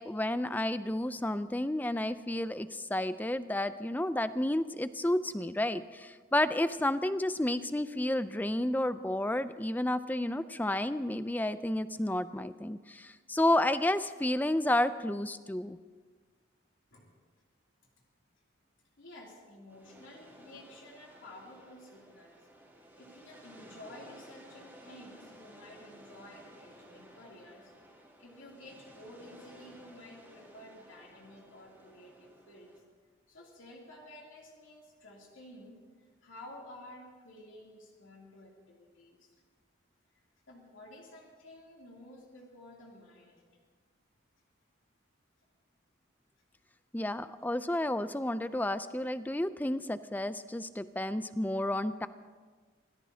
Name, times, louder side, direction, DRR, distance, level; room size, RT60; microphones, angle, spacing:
voice 1, 0.0-15.8 46.9-52.1, left 1 dB, 10° left, 12 dB, 0.4 m, -31 dB
voice 2, 19.0-22.5 22.7-32.7 33.3-39.3 40.5-43.5, left 1 dB, 80° left, -3 dB, 3.0 m, -52 dB
sound 1, 19.7-32.8, right 1 dB, 10° right, 3.7 m, -56 dB
26.5 x 18.0 x 2.8 m, 1.5 s
head